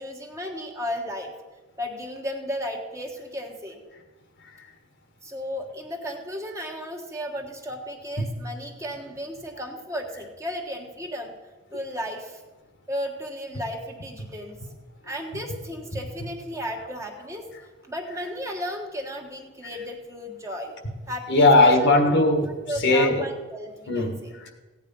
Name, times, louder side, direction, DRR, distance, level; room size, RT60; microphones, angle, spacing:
voice 1, 0.0-1.3 1.8-3.8 5.2-11.3 11.7-12.4 12.9-14.6 15.0-17.5 17.9-20.7 21.1-21.9 22.7-24.4, equal, 15° right, 1.5 m, -34 dB
voice 2, 21.3-22.5 22.8-23.3 23.9-24.2, left 2 dB, 55° left, 1.5 m, -18 dB
16.0 x 9.5 x 5.4 m
head